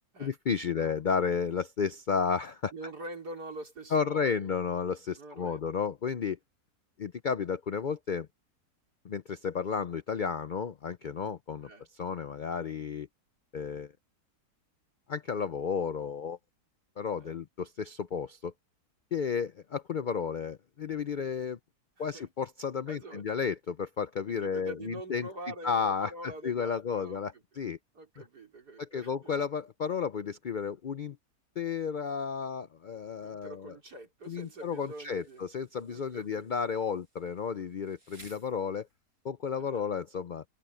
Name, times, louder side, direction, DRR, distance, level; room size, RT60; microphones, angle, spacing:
voice 1, 0.2-2.7 3.9-6.4 7.0-8.3 9.0-13.1 13.5-13.9 15.1-16.4 17.0-18.5 19.1-21.6 22.0-25.3 25.6-27.8 28.8-31.2 31.6-33.7 34.3-38.9 39.2-40.4, left 6 dB, 70° left, 0.4 m, -32 dB
voice 2, 2.7-4.6 5.2-5.6 11.6-11.9 17.2-17.4 22.0-22.3 22.9-23.2 24.3-27.4 27.9-29.5 33.2-35.5 35.9-36.5 39.6-39.9, right 1 dB, 85° right, 4.7 m, -45 dB
Insect, 34.2-39.2, right 2 dB, 65° right, 6.7 m, -60 dB
omnidirectional pair, 1.7 m